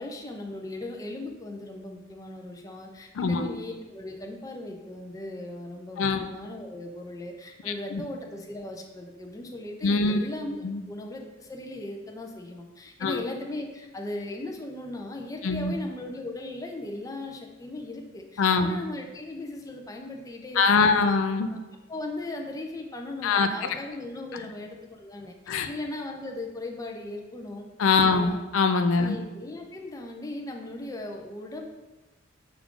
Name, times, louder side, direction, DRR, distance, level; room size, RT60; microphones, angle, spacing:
voice 1, 0.0-21.0 21.9-27.7 28.0-28.4 29.0-31.7, left 2 dB, 15° left, 2 dB, 0.4 m, -38 dB
voice 2, 3.1-3.5 6.0-6.3 7.7-8.0 9.8-10.2 10.6-10.8 13.0-13.2 15.4-15.7 18.4-18.8 20.6-21.5 23.2-23.5 25.5-25.7 27.8-29.1, left 4 dB, 85° left, 8 dB, 0.4 m, -23 dB
6.0 x 2.4 x 3.6 m, 1.1 s
head